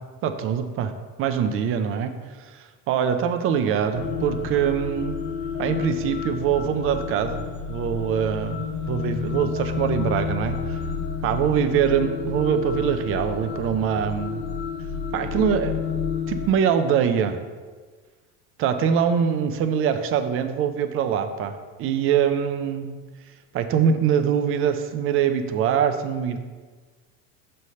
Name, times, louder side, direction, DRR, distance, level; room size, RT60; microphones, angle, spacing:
voice 1, 0.2-0.9 1.2-2.2 2.9-5.2 5.6-7.4 7.7-10.8 11.2-14.4 15.1-15.8 16.3-17.4 18.6-22.9 23.5-26.4, right 8 dB, 35° right, 8 dB, 0.4 m, -23 dB
sound 1, 3.9-16.5, left 6 dB, 85° left, 1.0 m, -30 dB
5.4 x 3.2 x 5.4 m, 1.4 s
supercardioid pair, 125°, 44 cm